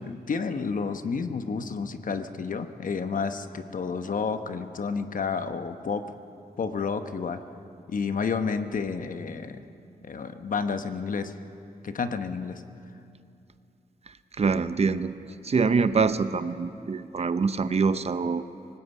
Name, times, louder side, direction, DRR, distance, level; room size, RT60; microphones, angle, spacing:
voice 1, 0.0-6.0 6.6-7.4 7.9-9.6 10.0-11.3 11.8-12.6, left 5 dB, 60° left, 9 dB, 1.0 m, -30 dB
voice 2, 14.4-15.2 15.4-18.5, right 5 dB, 40° right, 12 dB, 0.7 m, -25 dB
24.5 x 19.5 x 5.5 m, 2.6 s
wide cardioid pair, 100°, 16 cm